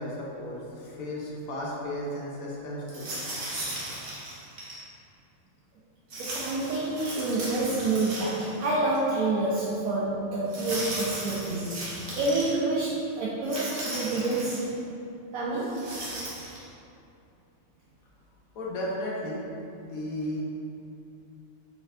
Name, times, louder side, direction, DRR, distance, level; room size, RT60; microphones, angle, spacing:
voice 1, 0.0-3.2 14.1-14.2 18.5-19.4 19.8-20.4, left 1 dB, 85° left, -4 dB, 1.1 m, -34 dB
sound 1, 2.9-4.8 6.1-8.6 8.9-9.0 10.5-12.5 13.4-14.6 15.6-16.6, right 1 dB, 50° right, 1.0 m, -36 dB
voice 2, 6.2-11.8 12.2-14.8 15.3-15.8, right 2 dB, 90° right, -6 dB, 1.0 m, -28 dB
4.1 x 3.4 x 2.5 m, 2.7 s
omnidirectional pair, 1.4 m